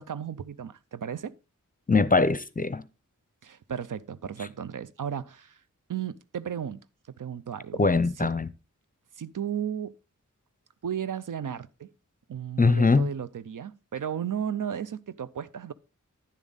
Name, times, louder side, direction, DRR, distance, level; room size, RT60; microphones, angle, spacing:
voice 1, 0.0-1.3 3.4-5.6 5.9-6.8 7.2-7.9 8.2-8.3 9.2-9.9 10.8-11.9 12.3-15.7, right 8 dB, 75° right, 0.6 m, -34 dB
voice 2, 1.9-2.8 7.8-8.5 12.6-13.1, left 4 dB, 25° left, 0.6 m, -22 dB
10.5 x 7.1 x 4.0 m
wide cardioid pair, 50°, 32 cm